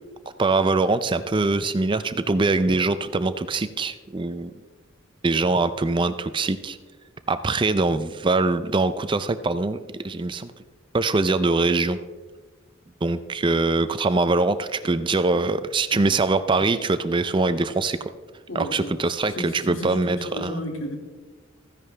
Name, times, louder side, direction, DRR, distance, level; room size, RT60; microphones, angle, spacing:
voice 1, 0.4-4.5 5.2-6.8 7.3-9.8 10.0-10.5 10.9-12.0 13.0-18.0 18.5-20.5, right 3 dB, 25° right, 12 dB, 0.4 m, -23 dB
voice 2, 18.5-18.9 19.4-21.0, left 1 dB, 75° left, 3 dB, 2.1 m, -32 dB
14.5 x 10.5 x 3.3 m, 1.3 s
head